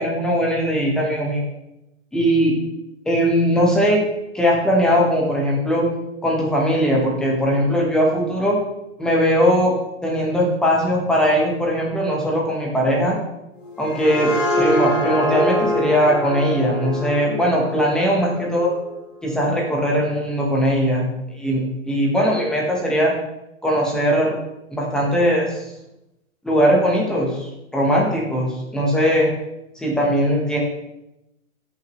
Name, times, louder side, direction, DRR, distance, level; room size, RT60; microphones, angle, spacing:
voice 1, 0.0-1.4 2.1-2.5 3.1-4.0 4.3-5.9 6.2-8.6 9.0-9.7 10.0-13.2 13.8-18.7 19.2-21.1 21.3-23.1 23.6-24.3 24.7-25.6 26.4-29.3 29.8-30.6, equal, ahead, -2 dB, 0.8 m, -19 dB
sound 1, 13.6-19.1, left 1 dB, 65° left, 2.0 m, -25 dB
12.5 x 5.9 x 3.0 m, 0.90 s
hypercardioid pair, 155°, 41 cm